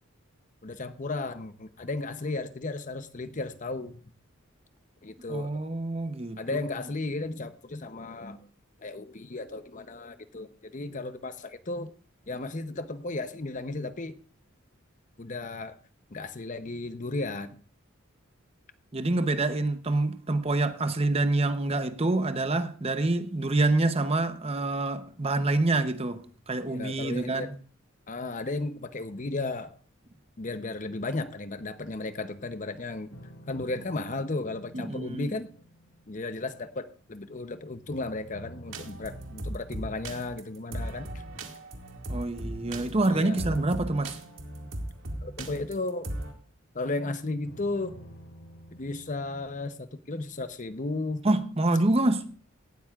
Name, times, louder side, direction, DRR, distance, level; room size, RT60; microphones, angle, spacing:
voice 1, 0.6-4.0 5.0-5.6 6.4-8.4 8.8-11.9 12.3-14.2 15.2-15.8 16.1-17.6 26.7-27.5 28.1-29.8 30.4-33.1 33.5-35.5 36.1-41.1 43.1-43.6 45.2-46.1 46.7-48.0 48.8-51.2, left 2 dB, 40° left, 0.8 m, -34 dB
voice 2, 5.3-6.7 18.9-27.5 34.7-35.3 42.1-44.2 51.2-52.3, right 2 dB, 30° right, 0.8 m, -27 dB
sound 1, 33.1-37.5 37.9-41.1 42.7-46.7 47.4-49.6, equal, 80° left, 5.1 m, -50 dB
sound 2, 38.7-46.3, right 1 dB, 65° right, 2.1 m, -37 dB
17.5 x 12.5 x 2.4 m
head